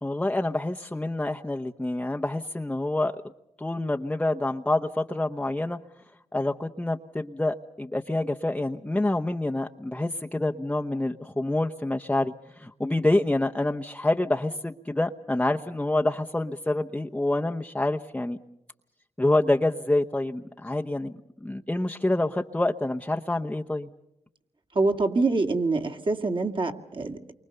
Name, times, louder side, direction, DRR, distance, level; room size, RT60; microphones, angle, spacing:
voice 1, 0.0-3.2 3.6-5.8 6.3-18.4 19.2-21.1 21.4-23.9, left 2 dB, 10° left, 3 dB, 0.9 m, -27 dB
voice 2, 24.7-27.3, right 3 dB, 45° right, 5 dB, 2.3 m, -25 dB
29.0 x 24.0 x 6.8 m, 0.86 s
cardioid pair, 70°, 12 cm